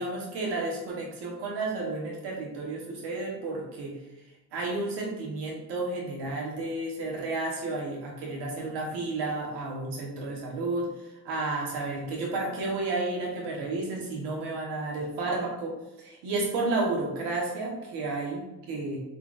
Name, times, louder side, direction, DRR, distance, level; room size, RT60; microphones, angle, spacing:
voice 1, 0.0-4.0 4.5-10.9 11.2-15.7 16.0-19.0, right 2 dB, 80° right, -1 dB, 1.2 m, -32 dB
3.9 x 3.4 x 2.4 m, 0.99 s
supercardioid pair, 65°, 41 cm